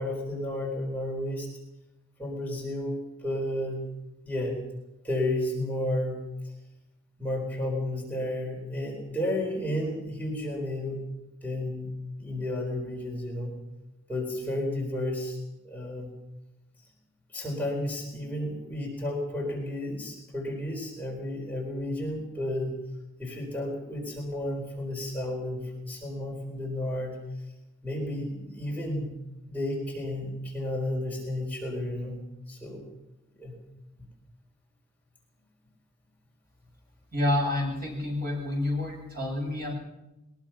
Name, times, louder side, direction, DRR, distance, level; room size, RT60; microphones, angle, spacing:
voice 1, 0.0-1.5 2.2-3.8 4.2-4.6 5.0-6.2 7.2-11.0 11.4-11.9 12.2-13.6 14.1-15.4 15.6-16.1 17.3-22.8 23.2-27.2 27.8-29.2 29.5-32.2 32.5-32.9 33.4-33.6, left 1 dB, 5° left, -2 dB, 4.2 m, -32 dB
voice 2, 37.1-39.7, left 1 dB, 45° right, 0 dB, 7.9 m, -28 dB
22.0 x 21.5 x 5.9 m, 0.97 s
head